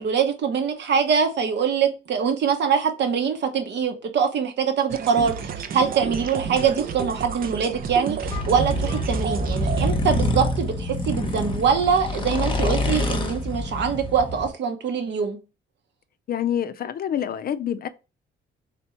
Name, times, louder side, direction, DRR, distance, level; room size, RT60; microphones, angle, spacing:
voice 1, 0.0-15.4, right 6 dB, 60° right, 0.9 m, -23 dB
sound 1, 4.9-9.9, right 6 dB, 45° right, 0.5 m, -31 dB
sound 2, 8.2-14.5, left 1 dB, 25° left, 0.9 m, -26 dB
voice 2, 16.3-17.9, left 9 dB, 50° left, 0.4 m, -27 dB
3.4 x 2.9 x 4.3 m
cardioid pair, 90°, 20 cm